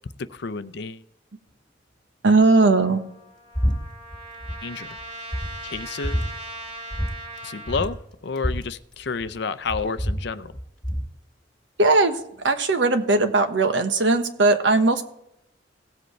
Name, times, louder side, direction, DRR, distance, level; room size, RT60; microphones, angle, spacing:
voice 1, 0.2-1.0 4.6-5.0 5.6-6.2 7.4-8.0 8.2-10.5, left 4 dB, 65° left, 14 dB, 0.6 m, -30 dB
voice 2, 2.2-3.0 11.8-15.0, right 3 dB, 75° right, 7 dB, 1.2 m, -19 dB
Trumpet, 2.8-7.9, right 1 dB, 35° right, 2.0 m, -39 dB
sound 1, 3.6-3.8 4.0-4.6 5.0-5.1 5.3-6.3 6.9-7.1 7.4-7.5 7.7-9.3 9.7-11.1, equal, 5° left, 2.1 m, -27 dB
17.5 x 7.7 x 3.2 m, 0.79 s
head